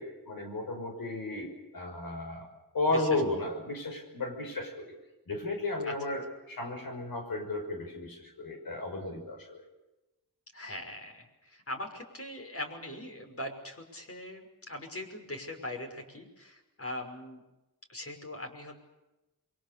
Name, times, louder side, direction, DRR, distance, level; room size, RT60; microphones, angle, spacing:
voice 1, 0.0-2.5 2.7-4.9 5.3-9.6, left 2 dB, 85° left, 4 dB, 6.2 m, -34 dB
voice 2, 10.5-17.4 17.9-18.8, left 1 dB, 40° left, 4 dB, 5.8 m, -41 dB
28.0 x 23.5 x 6.9 m, 1.0 s
wide cardioid pair, 80°, 35 cm